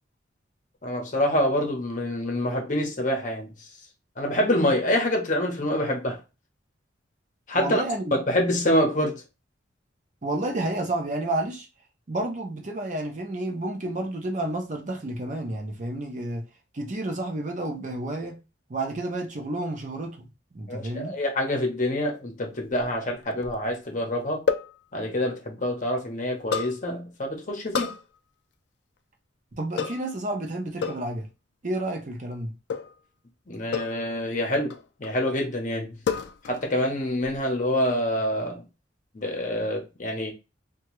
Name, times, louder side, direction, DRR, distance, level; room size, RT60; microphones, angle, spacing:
voice 1, 0.8-3.5 4.2-6.2 7.5-7.8 8.1-9.2 20.7-24.4 24.9-27.9 33.5-34.7 35.0-36.0 36.5-38.6 39.1-40.3, left 1 dB, 40° left, 0.8 m, -26 dB
voice 2, 7.5-8.2 10.2-11.7 12.1-16.4 16.7-18.4 18.7-20.3 20.5-21.1 29.5-31.3 31.6-32.5, right 1 dB, 40° right, 0.6 m, -30 dB
sound 1, 22.7-23.7 24.5-24.8 26.5-26.8 27.7-28.0 29.8-30.1 30.8-31.1 32.7-33.0 33.7-34.1 34.7-35.2 36.1-36.7 36.9-37.4, left 6 dB, 60° left, 0.3 m, -30 dB
2.8 x 2.3 x 3.0 m
head